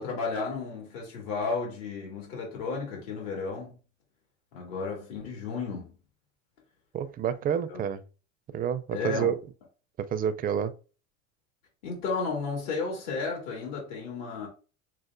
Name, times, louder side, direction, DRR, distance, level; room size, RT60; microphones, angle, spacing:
voice 1, 0.0-3.8 4.5-5.9 7.7-7.8 8.9-9.3 11.8-14.5, left 4 dB, 75° left, 2.4 m, -33 dB
voice 2, 6.9-8.0 8.5-9.4 10.0-10.7, right 8 dB, 25° right, 0.4 m, -29 dB
6.5 x 2.5 x 2.5 m
supercardioid pair, 115°, 38 cm